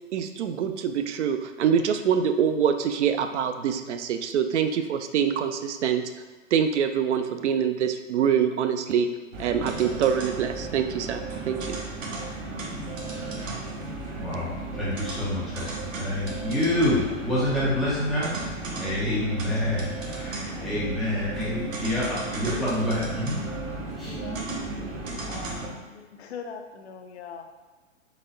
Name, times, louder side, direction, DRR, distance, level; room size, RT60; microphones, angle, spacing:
voice 1, 0.1-6.0 6.5-9.1 9.4-11.8 13.1-13.3, right 8 dB, 60° right, 7 dB, 0.5 m, -25 dB
sound 1, 9.3-25.7, right 2 dB, 80° right, 1.1 m, -34 dB
voice 2, 14.2-18.3 18.8-23.4 24.0-24.2, left 1 dB, ahead, -10 dB, 0.4 m, -27 dB
voice 3, 24.0-24.5 25.3-27.5, left 6 dB, 55° left, 5 dB, 0.6 m, -41 dB
4.1 x 3.3 x 3.9 m, 1.3 s
hypercardioid pair, 135°, 39 cm